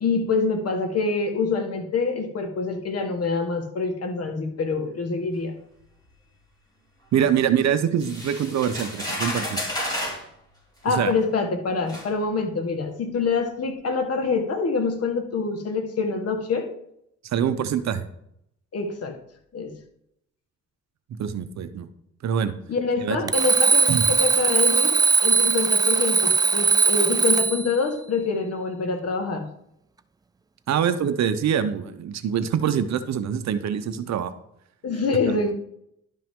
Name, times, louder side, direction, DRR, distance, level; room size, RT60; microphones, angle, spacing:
voice 1, 0.0-5.5 10.8-16.7 18.7-19.2 19.5-19.7 22.7-29.4 34.8-35.5, left 4 dB, 55° left, 5 dB, 1.6 m, -26 dB
voice 2, 7.1-9.6 10.9-11.1 17.2-18.1 21.1-21.9 22.2-22.5 23.0-23.2 23.9-24.0 30.7-34.3 35.3-35.4, right 8 dB, 65° right, 11 dB, 0.8 m, -24 dB
sound 1, 8.0-10.2 11.2-11.3 11.9-12.1, left 1 dB, 15° left, 3.5 m, -31 dB
Alarm, 23.3-27.7, right 5 dB, 15° right, 0.3 m, -20 dB
11.5 x 5.4 x 3.7 m, 0.76 s
cardioid pair, 90°, 30 cm